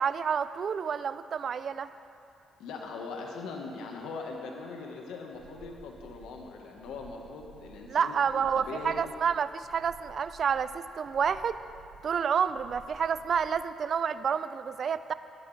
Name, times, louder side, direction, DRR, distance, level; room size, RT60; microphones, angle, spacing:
voice 1, 0.0-1.9 7.9-11.6 12.0-15.1, right 7 dB, 55° right, 13 dB, 0.4 m, -29 dB
voice 2, 2.6-8.2 8.6-9.0, left 4 dB, 90° left, 1 dB, 1.3 m, -41 dB
sound 1, 5.3-13.8, right 4 dB, 75° right, 1.2 m, -54 dB
18.5 x 11.5 x 3.3 m, 2.6 s
cardioid pair, 90°, 0 cm